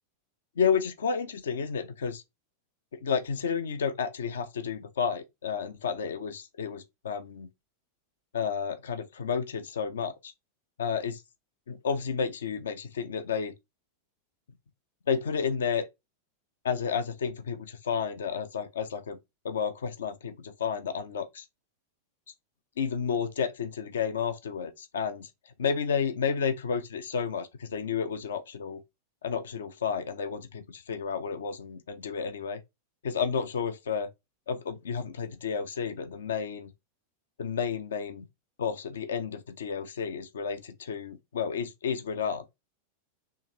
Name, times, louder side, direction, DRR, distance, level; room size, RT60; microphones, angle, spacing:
voice 1, 0.6-2.2 2.9-7.5 8.3-10.3 10.8-11.2 11.7-13.5 15.1-15.9 16.6-19.2 19.4-21.4 22.8-25.3 25.6-28.8 29.2-32.6 33.0-34.1 34.5-36.7 37.4-38.3 38.6-42.4, left 6 dB, 65° left, 0.6 m, -31 dB
4.5 x 3.1 x 3.1 m
figure-of-eight pair, 90°, 0 cm